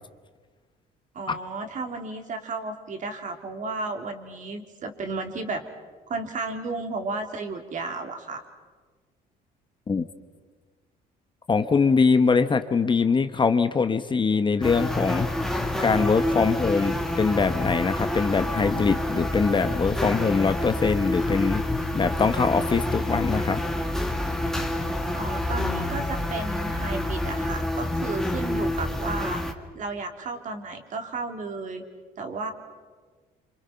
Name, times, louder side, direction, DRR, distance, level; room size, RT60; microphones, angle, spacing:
voice 1, 1.1-5.6 6.1-8.4 25.1-29.4 29.7-31.8 32.2-32.5, right 3 dB, 50° right, 5 dB, 3.1 m, -33 dB
voice 2, 11.5-15.3 15.8-21.6 21.9-23.6, left 5 dB, 30° left, 10 dB, 1.0 m, -23 dB
sound 1, 14.6-29.5, left 1 dB, 5° left, 1.9 m, -28 dB
28.0 x 26.5 x 5.8 m, 1.5 s
cardioid pair, 110°, 17 cm